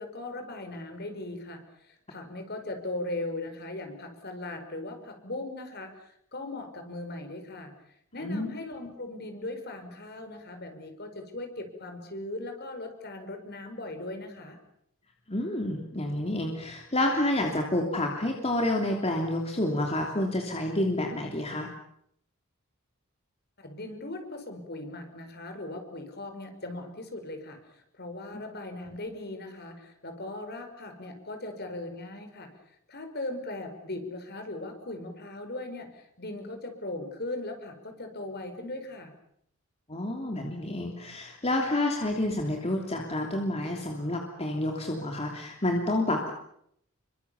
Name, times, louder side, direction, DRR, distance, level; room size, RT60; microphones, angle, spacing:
voice 1, 0.0-1.6 1.9-7.7 8.1-14.6 23.6-32.5 32.9-39.1, left 2 dB, 50° left, 6 dB, 5.3 m, -38 dB
voice 2, 15.3-21.7 28.3-28.4 39.9-46.3, left 1 dB, 30° left, 2 dB, 3.1 m, -29 dB
29.0 x 24.0 x 7.2 m, 0.73 s
head